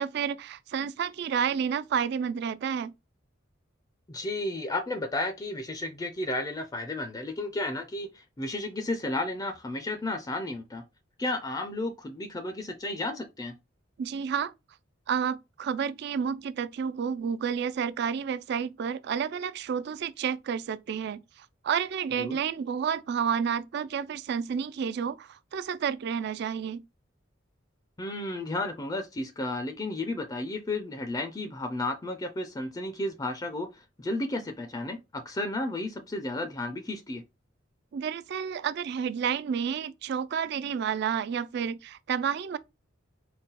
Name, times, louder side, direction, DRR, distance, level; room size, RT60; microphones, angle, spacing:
voice 1, 0.0-2.9 14.0-14.5 15.1-26.8 37.9-42.6, right 7 dB, 60° right, 0.3 m, -30 dB
voice 2, 4.1-10.8 11.2-13.5 22.2-22.4 28.0-37.2, left 2 dB, 20° left, 0.4 m, -33 dB
3.9 x 2.2 x 3.9 m
head